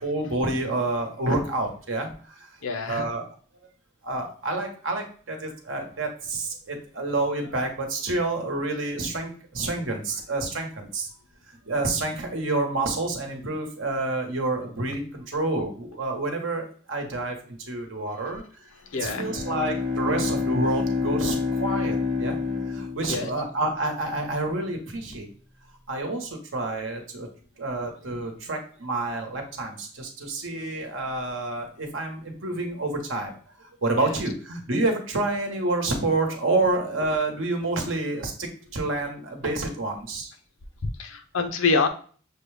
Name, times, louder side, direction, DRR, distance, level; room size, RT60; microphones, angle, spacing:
voice 1, 0.0-2.1 2.4-2.5 2.9-3.3 4.0-11.1 11.7-18.4 19.0-22.4 22.7-25.3 25.9-27.3 27.6-33.3 33.8-40.3, right 2 dB, 75° right, 3 dB, 1.0 m, -28 dB
voice 2, 2.6-3.1 18.9-19.3 23.1-23.3 34.0-34.2 40.8-41.9, left 4 dB, 85° left, 7 dB, 0.6 m, -26 dB
Bowed string instrument, 19.1-23.7, left 4 dB, 50° right, 1.3 m, -28 dB
6.3 x 2.2 x 3.3 m, 0.42 s
head